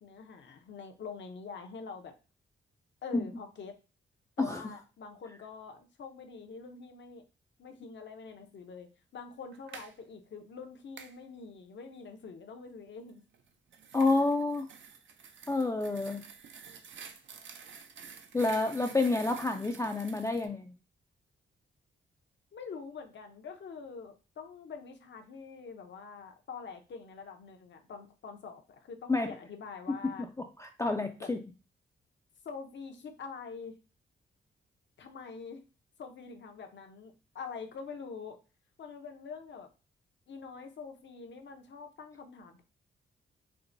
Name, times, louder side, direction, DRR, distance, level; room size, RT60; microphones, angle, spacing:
voice 1, 0.0-2.1 3.0-3.7 4.4-7.2 7.6-13.2 22.5-30.3 31.2-31.3 32.4-33.7 35.0-35.6 36.0-38.4 38.8-39.7 40.3-42.6, left 5 dB, 65° left, 5 dB, 0.7 m, -45 dB
sound 1, 9.5-9.9 11.0-11.2 13.3-20.5, right 6 dB, 65° right, 0.5 m, -50 dB
voice 2, 13.9-14.7 15.5-16.2 18.3-20.7 29.1-29.3 30.6-31.4, left 3 dB, 15° left, 4 dB, 0.4 m, -29 dB
4.5 x 2.1 x 2.5 m, 0.32 s
cardioid pair, 70°, 20 cm